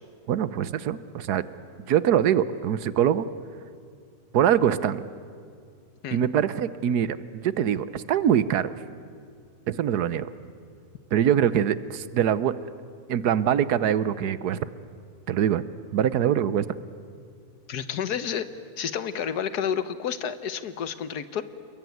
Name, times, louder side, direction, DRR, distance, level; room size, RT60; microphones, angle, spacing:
voice 1, 0.3-1.4 1.9-3.3 4.3-5.0 6.1-8.7 9.7-10.3 11.1-12.6 13.1-14.6 15.3-15.6 15.9-16.7, right 9 dB, 90° right, 16 dB, 1.4 m, -23 dB
voice 2, 17.7-18.5 18.8-21.4, left 8 dB, 85° left, 13 dB, 1.7 m, -30 dB
28.0 x 22.0 x 9.4 m, 2.3 s
omnidirectional pair, 1.6 m